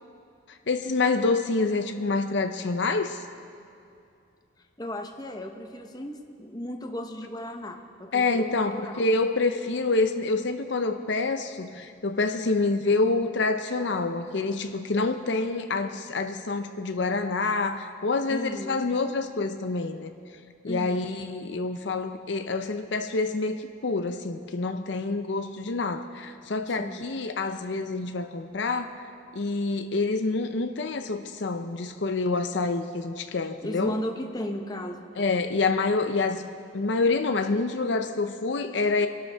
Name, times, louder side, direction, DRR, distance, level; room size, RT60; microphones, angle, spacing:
voice 1, 0.7-3.2 8.1-20.1 20.6-29.0 29.3-34.0 35.2-36.4 36.7-39.1, left 3 dB, 65° left, 8 dB, 0.6 m, -27 dB
voice 2, 4.8-9.1 18.3-18.9 20.6-21.0 26.6-27.0 33.6-35.1, left 1 dB, 20° left, 4 dB, 0.9 m, -35 dB
26.5 x 12.0 x 3.5 m, 2.5 s
head